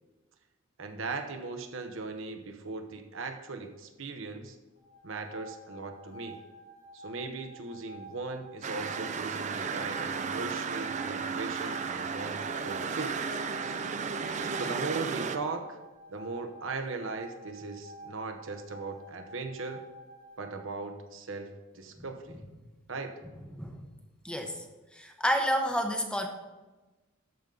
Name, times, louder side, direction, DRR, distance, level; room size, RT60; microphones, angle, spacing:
voice 1, 0.8-4.6 5.0-6.4 6.9-13.2 14.5-15.8 16.1-19.8 20.4-22.4 22.9-23.2, right 3 dB, 65° right, 6 dB, 0.8 m, -38 dB
sound 1, 4.8-20.6, right 1 dB, 85° left, 3.2 m, -50 dB
sound 2, 8.6-15.4, right 5 dB, 35° right, 0.4 m, -34 dB
voice 2, 23.6-23.9 24.2-24.6 24.9-26.3, equal, 5° left, 3 dB, 0.7 m, -30 dB
13.0 x 5.3 x 3.8 m, 1.2 s
head